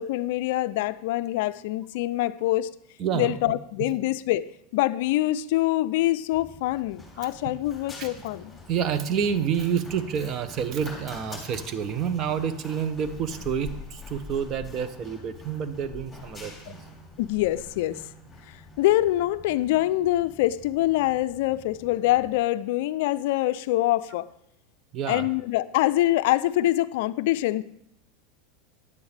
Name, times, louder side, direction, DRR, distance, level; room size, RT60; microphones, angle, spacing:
voice 1, 0.0-2.7 3.1-4.5 4.7-8.5 17.2-18.0 18.8-24.3 25.1-27.6, left 15 dB, 70° left, 0.3 m, -25 dB
voice 2, 3.0-3.4 3.8-3.9 7.2-7.3 8.0-8.1 8.7-16.8 24.9-25.3, right 7 dB, 45° right, 0.7 m, -28 dB
Run, 6.3-22.4, left 2 dB, 5° left, 3.2 m, -45 dB
9.7 x 8.7 x 3.3 m
hypercardioid pair, 110°, 0 cm